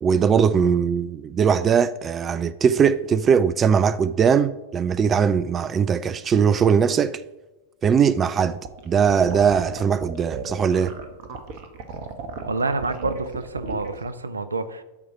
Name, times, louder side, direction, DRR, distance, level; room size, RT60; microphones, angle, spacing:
voice 1, 0.0-7.2 7.8-8.6 8.9-10.9, right 7 dB, 25° right, 0.4 m, -20 dB
sound 1, 8.5-14.1, right 4 dB, 45° right, 1.4 m, -35 dB
voice 2, 12.4-14.8, right 3 dB, 75° right, 0.7 m, -28 dB
12.0 x 4.8 x 6.8 m
figure-of-eight pair, 90°, 0 cm